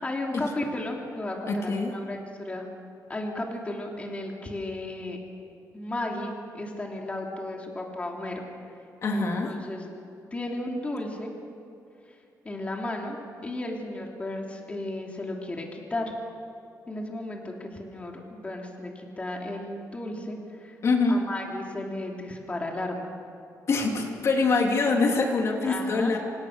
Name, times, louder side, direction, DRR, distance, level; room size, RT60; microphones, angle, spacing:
voice 1, 0.0-2.7 3.1-5.2 5.7-8.4 9.1-9.8 10.3-11.3 12.4-16.1 16.9-20.8 21.1-23.1 25.6-26.1, left 1 dB, 20° left, 0 dB, 3.1 m, -34 dB
voice 2, 1.5-1.9 9.0-9.5 20.8-21.2 23.7-26.2, left 3 dB, 50° left, 1 dB, 3.1 m, -24 dB
27.0 x 26.5 x 6.7 m, 2.6 s
wide cardioid pair, 150°, 6 cm